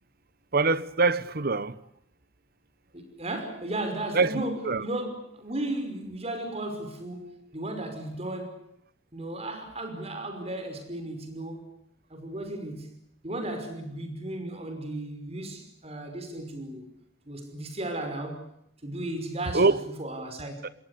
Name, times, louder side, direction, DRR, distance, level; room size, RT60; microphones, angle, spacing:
voice 1, 0.5-1.7 4.1-4.4 4.7-4.8 19.5-19.8 20.6-20.7, right 3 dB, 55° right, 1.1 m, -23 dB
voice 2, 2.9-8.6 9.1-11.7 12.1-13.0 13.2-16.9 17.3-18.5 18.8-19.6 20.0-20.7, right 1 dB, 35° right, 5.6 m, -35 dB
27.5 x 21.0 x 8.4 m
head